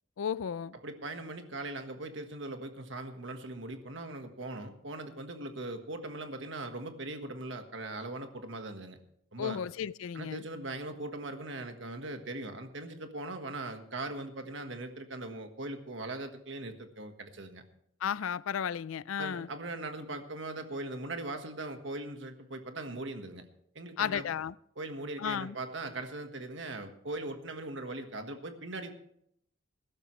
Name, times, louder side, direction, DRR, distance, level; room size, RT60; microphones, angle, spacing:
voice 1, 0.2-0.7 9.4-10.4 18.0-19.5 24.0-24.5 25.2-25.6, left 8 dB, 85° left, 0.4 m, -34 dB
voice 2, 0.8-9.0 9.3-9.6 10.1-17.6 19.2-23.5 23.7-24.3 24.8-28.9, right 2 dB, 65° right, 1.5 m, -40 dB
20.5 x 12.0 x 3.2 m
head